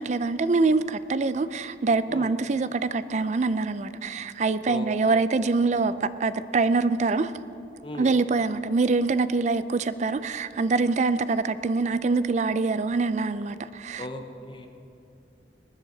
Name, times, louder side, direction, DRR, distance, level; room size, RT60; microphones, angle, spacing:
voice 1, 0.0-7.3 8.0-14.1, right 3 dB, 40° right, 14 dB, 0.4 m, -24 dB
voice 2, 4.7-5.2 7.8-8.1 14.0-14.7, left 1 dB, 30° left, 5 dB, 0.9 m, -38 dB
19.5 x 10.5 x 3.9 m, 2.7 s
head